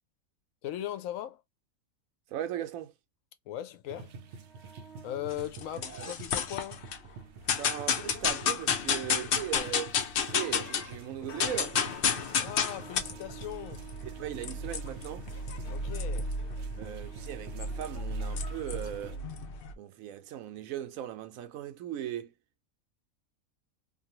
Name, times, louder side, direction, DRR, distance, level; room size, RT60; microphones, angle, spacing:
voice 1, 0.6-1.4 3.5-4.1 5.0-6.8 12.4-13.8 15.7-16.3, left 12 dB, 80° left, 1.0 m, -38 dB
voice 2, 2.3-2.9 5.8-6.1 7.5-11.8 14.2-15.3 16.8-19.2 19.8-22.3, right 11 dB, 85° right, 1.0 m, -38 dB
sound 1, 3.9-19.2, right 5 dB, 65° right, 0.8 m, -47 dB
sound 2, 5.3-7.0 7.5-10.9 11.2-19.7, left 6 dB, 60° left, 0.6 m, -32 dB
sound 3, 11.3-20.2, left 2 dB, 20° left, 0.7 m, -56 dB
2.7 x 2.6 x 2.8 m
omnidirectional pair, 1.4 m